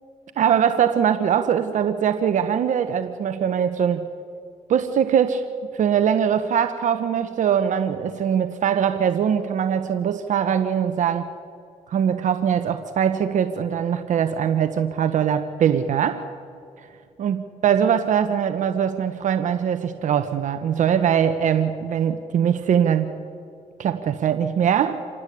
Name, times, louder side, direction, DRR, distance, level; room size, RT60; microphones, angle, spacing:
voice 1, 0.4-4.1 4.7-5.4 5.7-11.3 11.9-16.2 17.2-23.1 23.8-25.0, right 8 dB, 65° right, 9 dB, 1.1 m, -22 dB
27.5 x 19.0 x 8.4 m, 2.3 s
cardioid pair, 85°, 14 cm